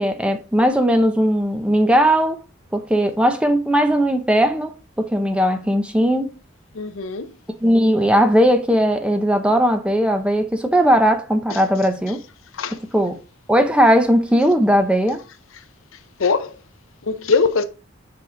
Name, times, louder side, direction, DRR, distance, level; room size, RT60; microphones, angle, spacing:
voice 1, 0.0-2.4 2.7-6.3 7.6-12.2 12.9-13.2 13.5-15.2, equal, 5° right, 0.7 m, -18 dB
voice 2, 6.7-7.3 11.5-11.6 12.5-12.8 16.2-16.6 17.0-17.6, left 4 dB, 75° left, 0.7 m, -21 dB
6.0 x 4.8 x 3.7 m
head